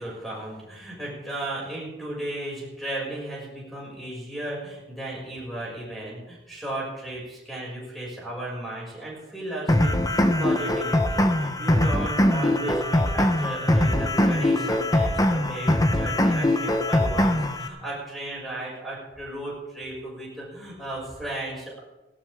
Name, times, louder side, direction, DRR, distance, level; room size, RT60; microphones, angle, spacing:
voice 1, 0.0-21.8, right 1 dB, ahead, -5 dB, 6.7 m, -35 dB
sound 1, 9.7-17.7, left 1 dB, 20° left, 1.0 m, -22 dB
18.5 x 16.0 x 3.7 m, 1.0 s
head